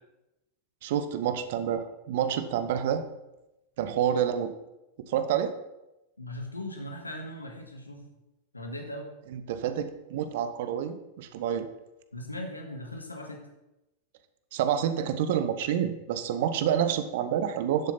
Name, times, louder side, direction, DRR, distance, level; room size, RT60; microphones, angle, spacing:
voice 1, 0.8-3.0 3.8-4.5 5.1-5.5 9.3-11.7 14.5-17.9, right 9 dB, 55° right, 11 dB, 0.8 m, -28 dB
voice 2, 6.2-8.1 8.5-9.1 12.1-13.4, left 1 dB, 80° left, 2 dB, 1.6 m, -39 dB
11.0 x 7.4 x 4.1 m, 0.95 s
figure-of-eight pair, 90°, 0 cm